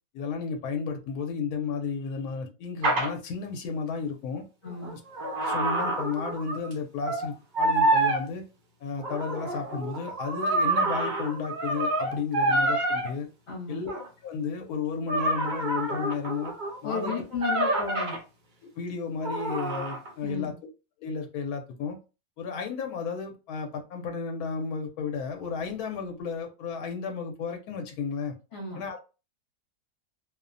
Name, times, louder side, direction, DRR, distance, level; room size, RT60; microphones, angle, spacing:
voice 1, 0.1-4.4 5.2-8.4 8.8-13.3 13.7-13.9 14.2-16.5 16.8-17.1 18.6-20.5 21.0-22.0 22.4-28.3 28.8-29.0, left 5 dB, 75° left, 4 dB, 1.0 m, -33 dB
sound 1, 2.8-3.1 4.7-6.7 7.0-7.3 7.5-8.2 9.0-13.1 13.9-14.1 15.1-18.2 19.2-20.1, right 2 dB, 80° right, 0.4 m, -27 dB
voice 2, 4.6-5.0 13.5-13.8 16.8-18.2 20.2-20.5 28.5-28.8, left 4 dB, 55° left, -2 dB, 1.0 m, -34 dB
2.6 x 2.1 x 2.4 m, 0.31 s
omnidirectional pair, 1.7 m